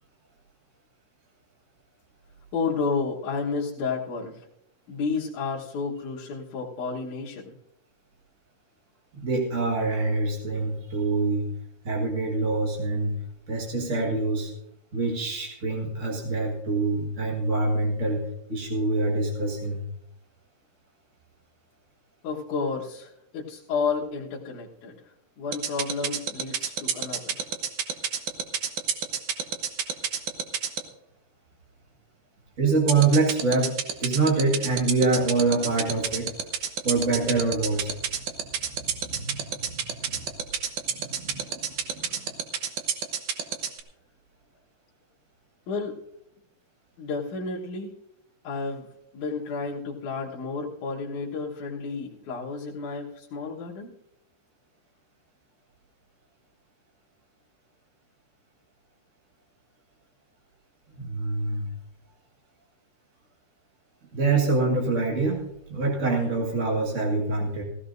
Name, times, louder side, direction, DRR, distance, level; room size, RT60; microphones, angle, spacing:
voice 1, 2.5-4.4 4.9-7.6 22.2-24.9 25.4-27.4 45.7-46.0 47.0-47.9 48.4-48.9 49.1-53.9, left 4 dB, 65° left, -5 dB, 2.5 m, -31 dB
voice 2, 9.1-11.5 11.8-13.1 13.5-14.5 14.9-18.2 18.5-19.8 32.6-36.3 36.8-37.9 38.8-40.3 40.8-42.3 60.9-61.7 64.1-65.4 65.7-67.6, right 3 dB, 40° right, -1 dB, 1.0 m, -25 dB
sound 1, 25.5-30.8 32.9-43.8, right 9 dB, 70° right, 2.1 m, -27 dB
16.0 x 15.5 x 2.6 m, 0.78 s
omnidirectional pair, 4.2 m